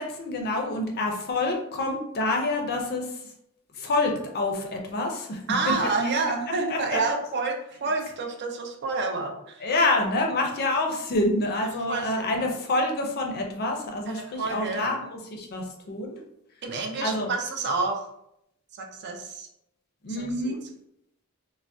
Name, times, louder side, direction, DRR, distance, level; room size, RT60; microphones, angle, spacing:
voice 1, 0.0-3.2 3.8-5.4 6.7-7.0 9.6-16.2 17.0-17.3 20.0-20.6, left 2 dB, 45° left, 2 dB, 0.5 m, -27 dB
voice 2, 5.5-9.7 11.9-12.5 14.1-14.9 16.6-18.0 18.7-19.5 20.1-20.6, right 3 dB, 50° right, 2 dB, 0.5 m, -29 dB
3.4 x 2.0 x 2.5 m, 0.77 s
head